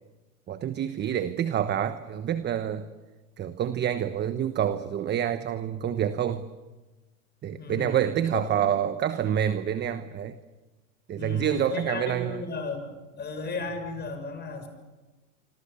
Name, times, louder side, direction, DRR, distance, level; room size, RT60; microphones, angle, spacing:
voice 1, 0.5-2.9 3.4-6.4 7.4-10.3 11.1-12.4, right 9 dB, 25° right, 11 dB, 1.1 m, -27 dB
voice 2, 7.6-8.0 8.3-8.7 11.1-12.8 13.1-14.7, left 4 dB, 20° left, 7 dB, 6.7 m, -35 dB
26.0 x 25.5 x 6.9 m, 1.2 s
hypercardioid pair, 120°, 45 cm